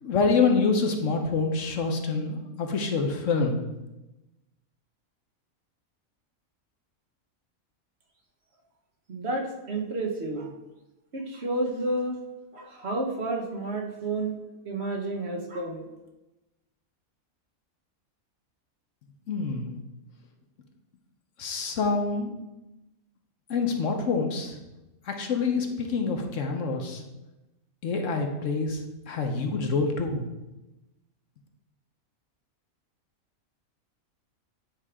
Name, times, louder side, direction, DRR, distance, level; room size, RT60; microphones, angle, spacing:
voice 1, 0.0-3.6 19.3-19.7 21.4-22.3 23.5-24.6 25.1-27.0 27.8-30.3, left 4 dB, 65° left, 4 dB, 1.2 m, -26 dB
voice 2, 9.1-10.5 11.1-12.2 12.5-14.4 14.6-15.9, right 2 dB, 50° right, 1 dB, 1.2 m, -30 dB
9.1 x 3.4 x 4.8 m, 0.99 s
omnidirectional pair, 1.5 m